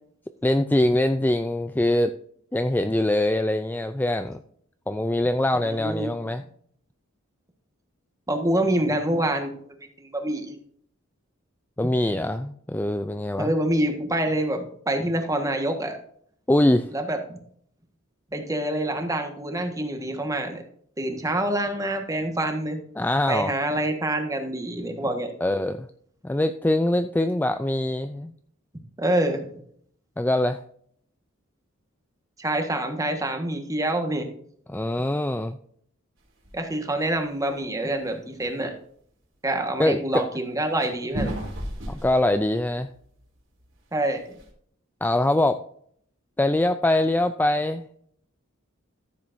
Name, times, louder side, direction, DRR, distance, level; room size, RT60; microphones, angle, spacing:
voice 1, 0.4-2.1 2.5-4.4 4.9-6.4 11.8-13.5 16.5-16.9 23.0-23.5 25.4-25.9 26.2-28.3 30.2-30.6 34.7-35.6 39.8-40.2 41.9-42.9 45.0-45.6 46.4-47.9, left 1 dB, 10° left, 9 dB, 0.4 m, -23 dB
voice 2, 5.6-6.1 8.3-10.5 13.4-16.0 16.9-17.4 18.3-20.6 21.0-22.8 23.3-25.3 29.0-29.5 32.4-34.3 36.5-38.7 39.4-41.3 43.9-44.4, right 1 dB, 15° right, 5 dB, 1.5 m, -26 dB
sound 1, 36.4-36.7 37.1-37.5 37.9-38.0 38.4-38.5 40.8-43.2 43.6-43.7 44.1-44.5, right 1 dB, 65° right, 3.6 m, -34 dB
14.0 x 7.5 x 2.7 m, 0.62 s
head